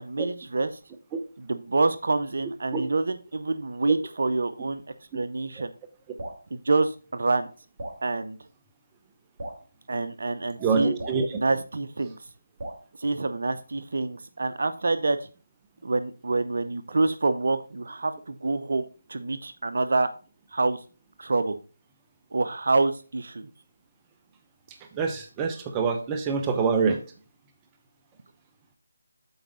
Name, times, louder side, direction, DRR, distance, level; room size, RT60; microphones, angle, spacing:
voice 1, 0.0-0.7 1.4-4.8 5.1-5.7 6.5-7.5 8.0-8.4 9.9-10.9 11.3-12.2 13.0-15.3 15.8-20.1 20.5-20.8 21.2-21.6 22.3-23.5, right 3 dB, 60° right, 11 dB, 0.7 m, -26 dB
Drip, 6.2-6.4 7.8-8.0 9.4-9.6 11.0-11.2 12.6-12.9, right 1 dB, 35° right, 2.7 m, -37 dB
voice 2, 10.6-11.4 24.9-27.0, right 5 dB, 15° right, 5 dB, 0.7 m, -25 dB
8.1 x 4.6 x 3.8 m, 0.35 s
figure-of-eight pair, 160°, 0 cm